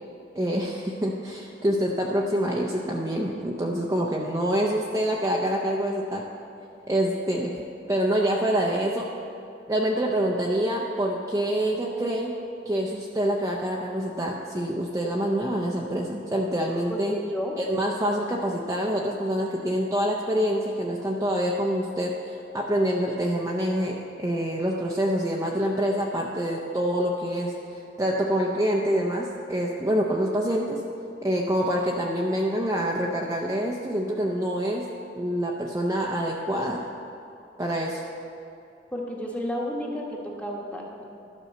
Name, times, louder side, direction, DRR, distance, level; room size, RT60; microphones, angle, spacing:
voice 1, 0.4-6.2 6.9-7.5 7.9-9.1 9.7-12.3 12.7-17.1 17.6-30.8 31.2-34.8 35.1-36.8 37.6-38.0, equal, 20° right, -1 dB, 0.6 m, -26 dB
voice 2, 16.9-17.6 38.9-41.0, equal, 10° left, -2 dB, 1.2 m, -32 dB
12.0 x 5.3 x 6.5 m, 2.6 s
head